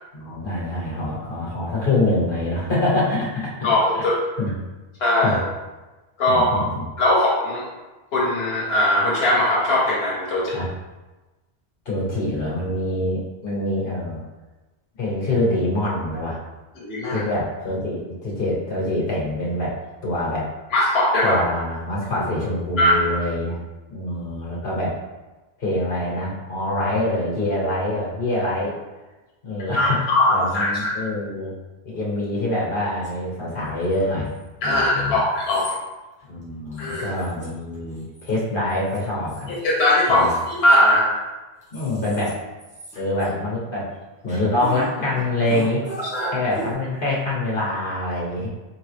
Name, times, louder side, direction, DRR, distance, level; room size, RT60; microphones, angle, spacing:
voice 1, 0.1-4.1 4.4-4.5 5.2-5.4 6.3-6.8 10.5-10.7 11.8-14.2 15.0-16.4 17.1-19.7 20.0-20.5 21.2-23.6 23.9-24.9 25.6-28.8 29.4-31.5 31.8-34.3 34.6-35.2 36.3-39.5 40.1-40.3 41.7-42.4 42.9-43.9 44.2-45.8 46.3-48.5, left 1 dB, 55° left, -5 dB, 1.3 m, -25 dB
voice 2, 3.6-4.2 5.0-5.4 6.2-6.5 7.0-7.6 8.1-10.6 16.8-17.2 20.7-21.4 22.8-23.0 29.7-30.9 34.6-35.7 36.8-37.1 39.6-41.1 46.1-46.3, left 1 dB, 80° left, -4 dB, 1.0 m, -19 dB
sound 1, 33.0-33.1 33.8-34.4 35.3-35.8 36.2-36.3 36.7-37.5 37.7-38.4 38.7-39.6 40.2-41.2 41.6-42.3 42.6-43.3 44.3-44.9 45.1-46.7, right 1 dB, 5° right, 1.4 m, -37 dB
3.9 x 3.6 x 3.3 m, 1.2 s
omnidirectional pair, 1.0 m